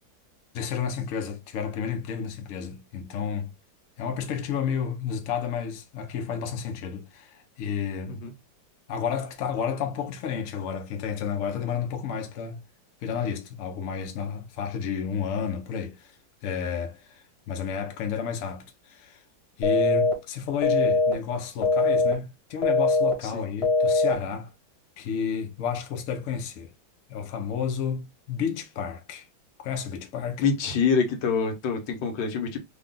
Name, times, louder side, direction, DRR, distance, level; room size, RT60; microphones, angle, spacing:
voice 1, 0.5-3.5 4.0-8.2 8.9-12.6 13.0-16.1 16.4-19.2 19.6-24.5 25.0-26.7 27.1-29.2 29.6-30.4, left 7 dB, 60° left, 0.9 m, -31 dB
sound 1, 19.6-20.1 20.6-21.1 21.6-22.1 22.6-23.1 23.6-24.1, left 3 dB, 20° left, 1.0 m, -21 dB
voice 2, 30.4-32.6, left 5 dB, 80° left, 1.7 m, -25 dB
3.6 x 2.3 x 3.6 m
omnidirectional pair, 2.0 m